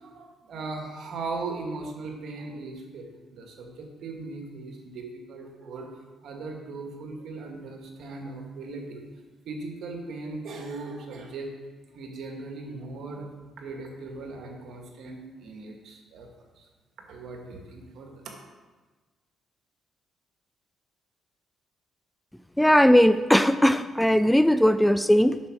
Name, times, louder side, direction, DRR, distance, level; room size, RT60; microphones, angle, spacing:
voice 1, 0.0-5.9 6.2-9.0 9.5-11.5 11.9-13.3 13.6-16.3 16.6-16.7 17.1-18.3, right 3 dB, 70° right, 2 dB, 1.8 m, -38 dB
voice 2, 22.6-25.4, equal, 5° left, 12 dB, 0.3 m, -19 dB
8.2 x 6.2 x 6.1 m, 1.3 s
cardioid pair, 90°, 0 cm